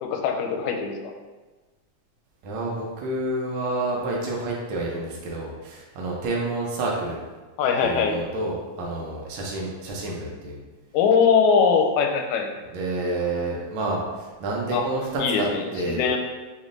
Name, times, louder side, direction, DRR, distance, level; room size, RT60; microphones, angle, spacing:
voice 1, 0.0-1.1 7.6-8.1 10.9-12.5 14.7-14.8 15.2-16.2, left 6 dB, 90° left, 3 dB, 2.0 m, -21 dB
voice 2, 2.4-7.2 7.8-10.6 12.7-15.5 15.7-16.1, right 2 dB, 90° right, -3 dB, 1.1 m, -29 dB
6.3 x 3.2 x 2.6 m, 1.2 s
omnidirectional pair, 3.3 m